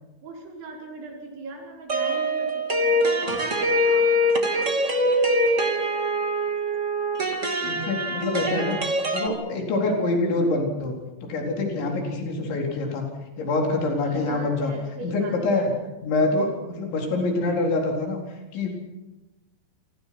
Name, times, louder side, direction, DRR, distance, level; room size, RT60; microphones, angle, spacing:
voice 1, 0.2-6.1 7.7-8.0 14.0-15.7, right 2 dB, 75° right, -1 dB, 7.9 m, -40 dB
sound 1, 1.9-9.3, equal, 40° right, 1.0 m, -23 dB
voice 2, 7.6-10.9 11.2-13.0 13.4-14.7 15.0-15.7 16.0-18.2 18.5-18.7, left 2 dB, 75° left, 1 dB, 6.6 m, -25 dB
29.0 x 24.0 x 6.1 m, 1.1 s
omnidirectional pair, 5.3 m